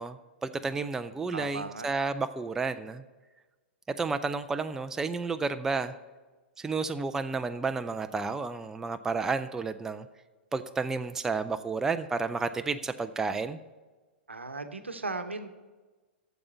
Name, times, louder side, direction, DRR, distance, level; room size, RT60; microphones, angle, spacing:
voice 1, 0.0-3.0 4.0-5.9 6.6-10.1 10.5-13.6, right 4 dB, 5° right, 9 dB, 0.3 m, -31 dB
voice 2, 0.6-0.9 1.3-1.9 14.3-15.5, right 3 dB, 80° right, 9 dB, 0.9 m, -37 dB
8.4 x 7.0 x 8.0 m, 1.3 s
figure-of-eight pair, 105°, 6 cm